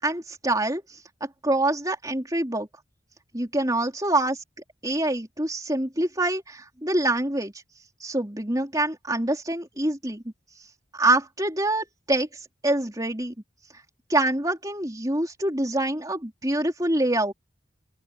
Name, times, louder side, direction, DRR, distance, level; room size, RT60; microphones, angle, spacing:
voice 1, 0.0-1.0 1.4-2.7 3.3-4.4 4.8-7.5 8.0-10.2 10.6-13.3 14.1-17.3, right 1 dB, 20° right, 4.2 m, -25 dB
open air
head